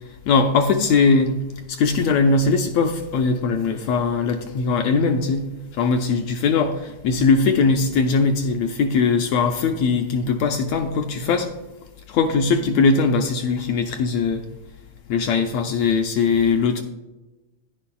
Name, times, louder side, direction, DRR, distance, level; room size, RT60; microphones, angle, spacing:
voice 1, 0.3-1.4 1.7-5.5 5.8-11.5 12.1-14.4 15.1-16.8, left 4 dB, 80° left, 4 dB, 1.6 m, -20 dB
11.0 x 10.0 x 2.3 m, 1.1 s
omnidirectional pair, 3.5 m